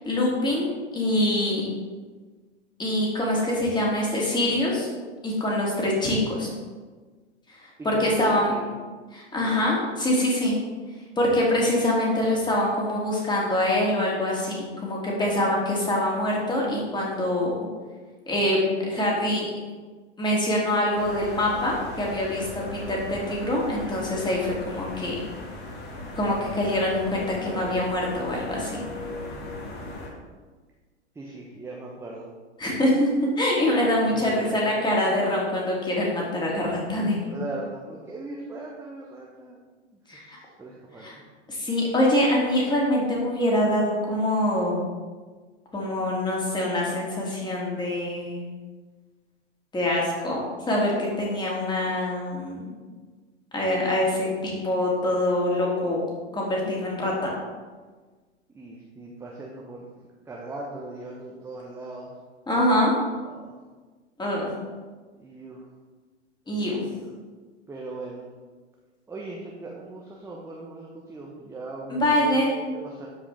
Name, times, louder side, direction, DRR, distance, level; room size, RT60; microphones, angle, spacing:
voice 1, 0.0-1.7 2.8-4.9 5.2-6.5 7.8-8.5 9.1-10.5 11.2-17.5 18.3-19.5 20.2-25.1 26.2-28.8 32.6-33.1 33.4-37.2 40.1-40.4 41.0-41.1 41.5-44.9 45.7-48.4 49.7-50.4 50.7-52.7 53.5-56.0 56.3-57.3 62.5-62.9 64.2-64.5 66.5-66.8 71.9-72.5, left 1 dB, 10° left, -3 dB, 2.5 m, -24 dB
voice 2, 7.8-8.7 9.4-9.6 31.1-32.3 34.1-34.7 37.3-39.6 40.1-40.3 40.6-41.2 58.5-59.9 60.3-62.1 63.2-63.6 65.2-65.6 66.8-67.1 67.7-68.3 69.1-73.1, right 2 dB, 5° right, -3 dB, 0.9 m, -39 dB
sound 1, 20.9-30.1, left 1 dB, 30° left, 1.7 m, -38 dB
13.0 x 5.0 x 3.4 m, 1.4 s
figure-of-eight pair, 95°, 35 cm